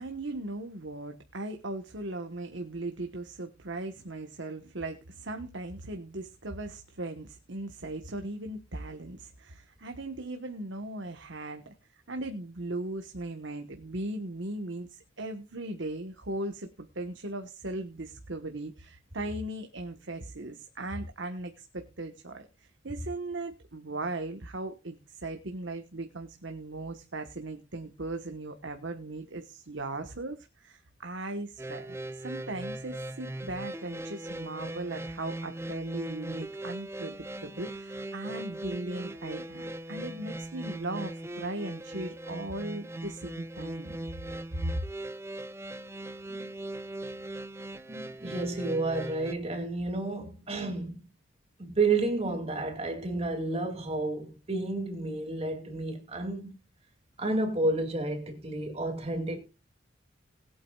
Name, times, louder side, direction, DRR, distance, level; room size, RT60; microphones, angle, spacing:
voice 1, 0.0-44.0 44.6-44.8, right 2 dB, 70° right, 1.3 m, -38 dB
sound 1, 31.6-49.3, right 1 dB, 15° right, 0.6 m, -39 dB
voice 2, 47.9-51.0 51.6-56.5 57.2-59.4, right 2 dB, 30° right, 2.4 m, -31 dB
20.5 x 8.7 x 2.4 m
head